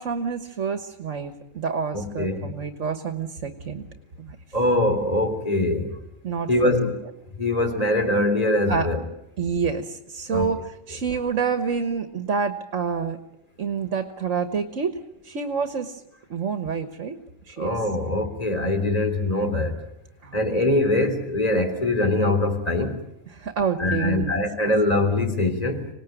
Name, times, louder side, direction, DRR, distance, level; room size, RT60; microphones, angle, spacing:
voice 1, 0.0-3.9 4.2-4.4 6.2-6.8 8.7-8.9 9.4-10.6 10.9-13.2 13.6-14.9 15.2-16.0 16.3-17.2 17.5-17.8 20.2-20.4 23.3-24.3, right 5 dB, 70° right, 9 dB, 1.7 m, -28 dB
voice 2, 1.9-2.5 4.5-6.0 6.5-7.0 7.4-9.0 10.3-10.5 17.6-19.8 20.3-23.0 23.8-25.9, left 1 dB, 30° left, 6 dB, 3.4 m, -23 dB
26.0 x 19.0 x 9.1 m, 0.87 s
omnidirectional pair, 1.3 m